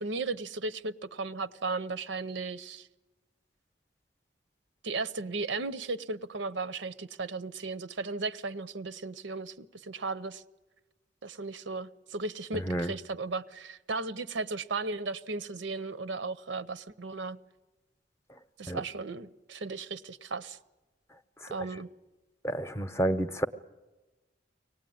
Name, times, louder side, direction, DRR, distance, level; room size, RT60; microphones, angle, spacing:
voice 1, 0.0-2.9 4.8-10.4 11.2-17.4 18.6-20.6 21.5-21.9, right 3 dB, 80° right, 0.8 m, -36 dB
voice 2, 22.4-23.5, right 1 dB, 15° left, 0.8 m, -29 dB
24.0 x 18.5 x 9.4 m
head